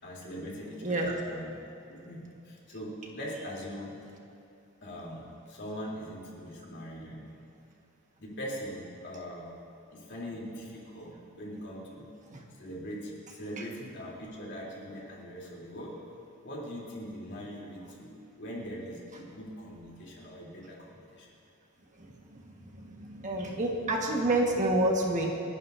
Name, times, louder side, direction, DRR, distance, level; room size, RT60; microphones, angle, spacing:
voice 1, 0.0-1.6 1.9-4.0 4.8-7.3 8.2-9.5 9.9-12.1 12.6-16.0 16.4-21.3, equal, 55° left, -4 dB, 3.3 m, -41 dB
voice 2, 0.8-1.1 12.3-12.4 23.0-25.3, right 1 dB, 35° right, 0 dB, 1.6 m, -28 dB
29.5 x 11.5 x 2.7 m, 2.7 s
head